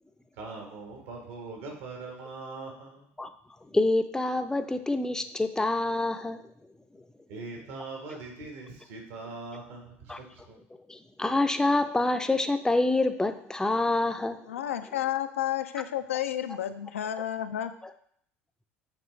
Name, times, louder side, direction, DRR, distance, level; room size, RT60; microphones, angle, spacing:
voice 1, 0.4-3.1 7.3-10.6, right 3 dB, 65° right, 1 dB, 1.5 m, -41 dB
voice 2, 3.7-6.4 10.1-10.2 10.9-14.4, left 2 dB, 10° left, 9 dB, 0.5 m, -26 dB
voice 3, 14.5-17.8, left 11 dB, 80° left, 10 dB, 0.4 m, -31 dB
8.1 x 3.7 x 3.3 m, 0.67 s
figure-of-eight pair, 65°, 7 cm